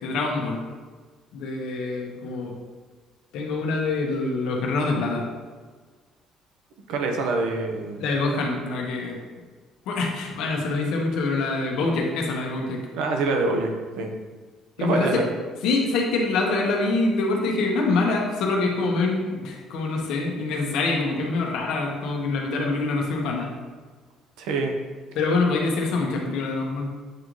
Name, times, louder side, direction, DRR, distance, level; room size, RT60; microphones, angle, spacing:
voice 1, 0.0-0.6 1.3-2.5 3.3-5.2 8.0-9.2 9.9-12.8 14.8-15.2 15.6-23.5 25.1-26.9, left 3 dB, 65° left, 0 dB, 1.1 m, -25 dB
voice 2, 6.9-8.0 12.9-13.7 14.0-14.1 14.8-15.2 24.4-24.7, right 3 dB, 90° right, 3 dB, 0.8 m, -25 dB
7.7 x 3.9 x 3.1 m, 1.4 s
cardioid pair, 180°, 0 cm